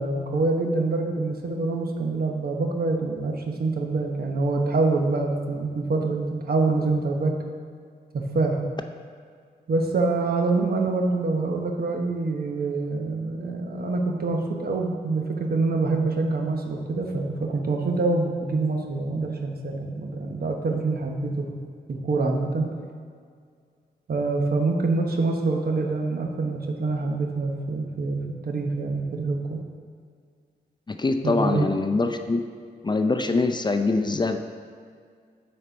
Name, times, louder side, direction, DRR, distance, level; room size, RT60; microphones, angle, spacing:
voice 1, 0.0-7.3 8.1-8.6 9.7-21.5 21.9-22.7 24.1-29.6 31.2-31.7, right 3 dB, 60° right, 2 dB, 1.0 m, -25 dB
voice 2, 30.9-32.4 32.8-34.4, left 3 dB, 25° left, 6 dB, 0.5 m, -23 dB
7.9 x 4.3 x 5.2 m, 2.1 s
cardioid pair, 60°, 17 cm